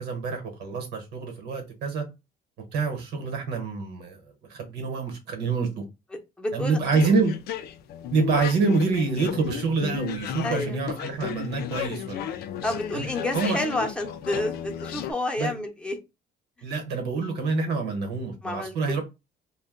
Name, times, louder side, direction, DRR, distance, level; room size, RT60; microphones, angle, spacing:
voice 1, 0.0-2.0 2.7-5.8 6.5-7.3 8.1-12.3 12.9-13.1 13.3-13.6 15.4-15.5 16.6-19.0, right 4 dB, 80° right, 1.1 m, -26 dB
voice 2, 6.4-6.8 10.4-10.8 12.6-16.0 18.4-19.0, left 1 dB, 5° left, 0.7 m, -30 dB
sound 1, 6.9-15.1, left 10 dB, 70° left, 0.4 m, -34 dB
2.5 x 2.2 x 3.6 m
cardioid pair, 110°, 17 cm